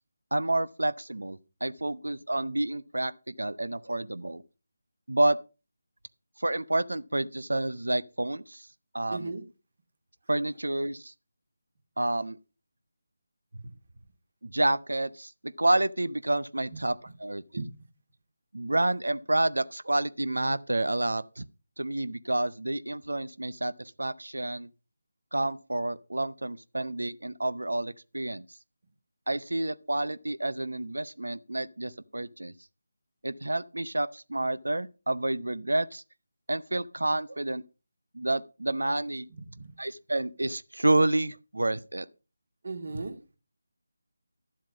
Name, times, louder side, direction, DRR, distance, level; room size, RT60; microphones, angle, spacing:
voice 1, 0.3-4.4 5.1-5.4 6.4-8.7 8.9-9.3 10.3-11.1 12.0-12.4 14.4-17.6 18.5-21.5 21.8-24.7 25.3-28.4 29.3-32.5 33.2-36.0 36.5-37.6 38.1-39.3 39.8-42.1, right 2 dB, 75° right, 0.8 m, -29 dB
voice 2, 9.1-9.4 13.5-13.7 16.7-16.8 17.5-17.7 39.3-39.7 42.6-43.2, right 3 dB, 55° right, 2.7 m, -37 dB
12.0 x 7.6 x 5.1 m
figure-of-eight pair, 160°, 0 cm